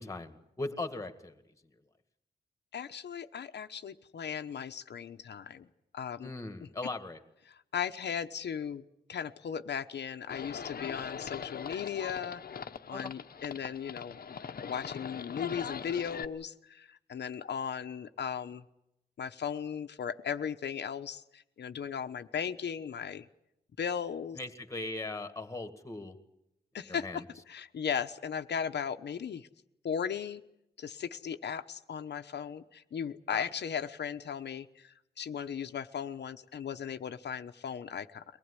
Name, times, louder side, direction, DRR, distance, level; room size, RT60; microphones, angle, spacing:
voice 1, 0.0-1.4 6.2-7.2 12.9-13.1 24.4-26.2 26.9-27.2 33.3-33.5, left 2 dB, 20° left, 10 dB, 2.0 m, -39 dB
voice 2, 2.7-5.7 5.9-6.3 7.5-8.8 9.1-12.6 12.9-14.2 14.6-18.6 19.2-23.3 23.8-24.4 26.7-29.5 29.8-30.4 30.8-38.2, left 7 dB, 90° left, 7 dB, 1.1 m, -37 dB
Livestock farm animals working animals, 10.3-16.2, left 7 dB, 60° left, 1.1 m, -41 dB
23.5 x 19.5 x 9.9 m, 0.84 s
wide cardioid pair, 175°, 17 cm